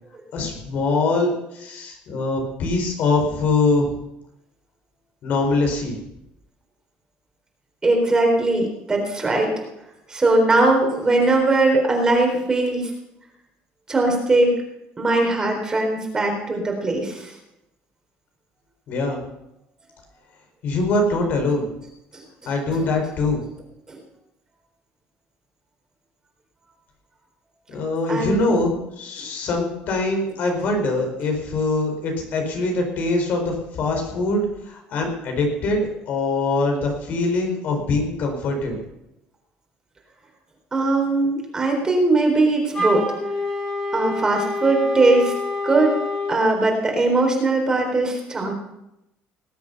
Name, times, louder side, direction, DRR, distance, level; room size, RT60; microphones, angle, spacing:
voice 1, 0.3-3.9 5.2-6.0 18.9-19.2 20.6-21.6 22.4-23.4 27.7-38.8, left 2 dB, 55° left, 3 dB, 4.6 m, -23 dB
voice 2, 7.8-9.5 10.1-12.8 13.9-14.5 15.0-17.3 22.1-22.5 23.9-24.0 28.1-28.5 40.7-43.1 43.9-45.3 45.6-46.0 46.3-48.5, right 2 dB, 20° right, 1 dB, 4.0 m, -20 dB
Wind instrument woodwind instrument, 42.7-46.4, left 2 dB, 25° left, 4.1 m, -27 dB
19.5 x 8.1 x 6.7 m, 0.88 s
cardioid pair, 130°, 3 cm